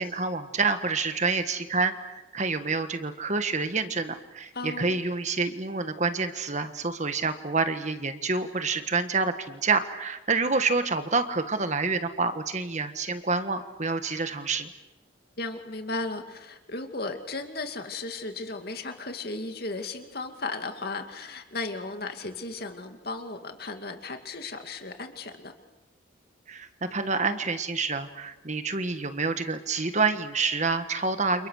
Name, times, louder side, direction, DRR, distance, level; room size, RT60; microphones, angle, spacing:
voice 1, 0.0-14.7 26.5-31.5, right 4 dB, 35° right, 9 dB, 1.6 m, -28 dB
voice 2, 4.5-5.0 15.4-25.5, left 3 dB, 50° left, 6 dB, 2.5 m, -35 dB
29.5 x 28.5 x 6.6 m, 1.0 s
head